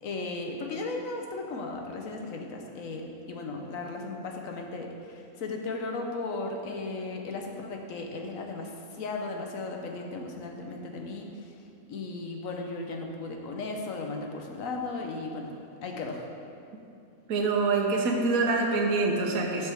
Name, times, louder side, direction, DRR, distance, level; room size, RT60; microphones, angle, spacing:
voice 1, 0.0-11.3 11.9-15.5 15.8-16.2, left 3 dB, 70° left, 2 dB, 1.3 m, -36 dB
voice 2, 17.3-19.7, right 3 dB, 75° right, 0 dB, 1.4 m, -25 dB
12.0 x 6.5 x 3.5 m, 2.6 s
omnidirectional pair, 1.5 m